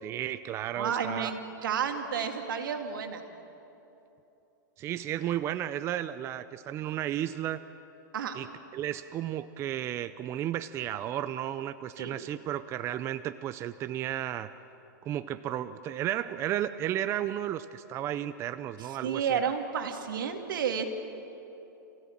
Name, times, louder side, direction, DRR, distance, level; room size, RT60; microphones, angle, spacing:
voice 1, 0.0-1.3 4.8-7.6 8.3-8.5 8.7-14.5 15.0-19.5, right 11 dB, 25° right, 12 dB, 0.5 m, -33 dB
voice 2, 0.8-3.2 8.1-8.4 12.0-12.1 19.0-20.8, right 7 dB, 80° right, 5 dB, 2.4 m, -31 dB
28.0 x 16.5 x 7.4 m, 3.0 s
hypercardioid pair, 145°, 11 cm